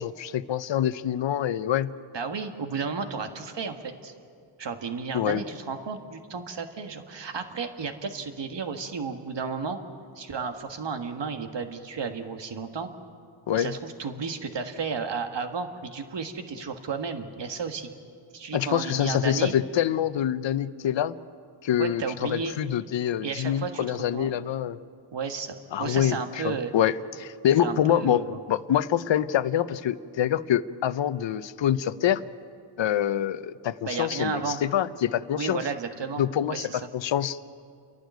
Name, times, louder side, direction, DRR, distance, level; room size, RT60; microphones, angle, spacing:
voice 1, 0.0-1.9 5.1-5.4 13.5-13.7 18.5-21.1 21.6-24.8 25.7-32.2 32.8-35.6 36.2-37.5, left 10 dB, 65° left, 14 dB, 0.8 m, -26 dB
voice 2, 2.1-4.1 4.6-9.8 10.2-12.9 13.5-17.9 18.3-19.5 21.8-22.5 23.2-24.3 25.1-26.7 27.6-28.4 33.8-34.6 35.3-36.2 36.5-36.8, right 5 dB, 60° right, 6 dB, 1.7 m, -33 dB
29.5 x 11.5 x 9.4 m, 2.3 s
cardioid pair, 85°, 48 cm